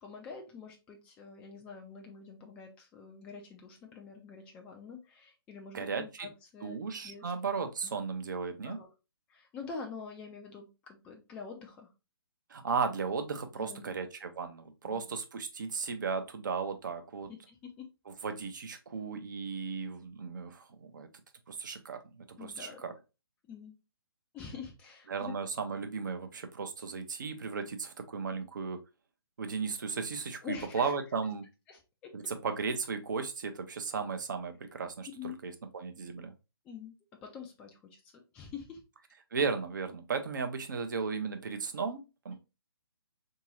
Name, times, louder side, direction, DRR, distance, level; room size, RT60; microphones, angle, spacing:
voice 1, 0.0-7.3 7.8-7.9 8.6-8.9 9.3-11.9 13.6-13.9 14.8-15.0 17.3-17.9 22.4-22.8 23.5-23.8 24.3-25.3 30.4-30.9 31.7-32.1 35.2-35.4 36.6-38.8, left 5 dB, 10° left, 1 dB, 0.4 m, -46 dB
voice 2, 5.7-6.3 6.6-8.8 12.5-17.3 18.1-21.1 21.5-22.9 25.1-28.8 29.4-31.5 32.1-36.3 39.3-42.3, right 5 dB, 50° right, 6 dB, 0.7 m, -35 dB
3.6 x 2.8 x 2.9 m, 0.27 s
figure-of-eight pair, 135°, 13 cm